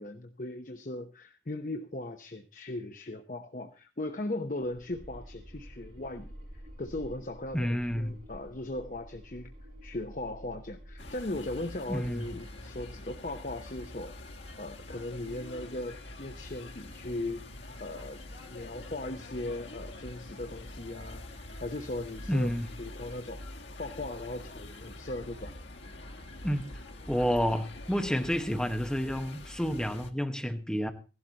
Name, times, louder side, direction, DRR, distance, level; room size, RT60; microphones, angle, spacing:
voice 1, 0.0-6.3 6.8-9.5 9.8-14.1 14.6-17.5 17.8-18.2 18.5-21.2 21.6-25.5, left 2 dB, 45° left, 6 dB, 0.9 m, -38 dB
sound 1, 4.6-13.5, equal, 45° right, 8.0 m, -50 dB
voice 2, 7.5-8.1 11.9-12.3 22.3-22.7 26.4-26.6 27.1-30.9, equal, 5° left, 6 dB, 1.0 m, -30 dB
sound 2, 11.0-30.1, left 1 dB, 90° left, 1.6 m, -45 dB
15.5 x 12.0 x 4.0 m, 0.33 s
head